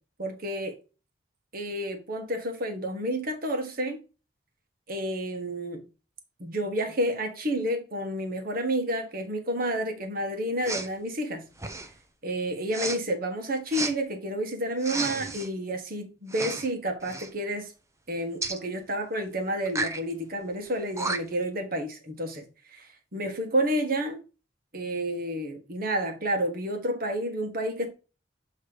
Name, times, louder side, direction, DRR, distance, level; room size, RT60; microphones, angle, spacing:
voice 1, 0.2-0.7 1.5-4.0 4.9-5.8 6.4-11.5 12.2-17.7 18.1-24.2 24.7-27.9, right 1 dB, 50° right, 1.4 m, -30 dB
Respiratory sounds, 10.6-10.9 11.5-12.0 12.7-13.0 13.7-13.9 14.8-15.5 16.3-16.7 17.0-17.3 18.4-18.6 19.7-20.0 20.7-20.8 21.0-21.4, right 3 dB, 15° right, 0.6 m, -32 dB
7.8 x 3.2 x 4.8 m
head